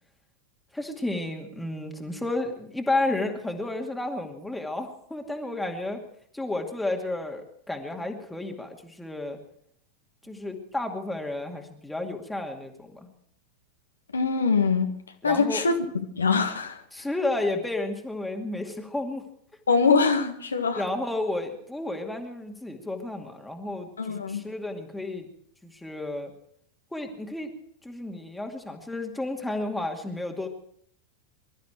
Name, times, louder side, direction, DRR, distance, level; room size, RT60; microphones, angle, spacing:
voice 1, 0.7-6.0 6.3-9.4 10.2-13.1 15.2-15.6 16.9-19.2 20.8-25.3 25.6-26.3 26.9-27.5 27.8-30.5, left 2 dB, 5° left, 2.3 m, -32 dB
voice 2, 14.1-14.9 15.2-15.8 16.2-16.8 19.7-20.8 24.0-24.4, left 4 dB, 75° left, 1.7 m, -23 dB
23.5 x 13.0 x 4.6 m
figure-of-eight pair, 90°, 0 cm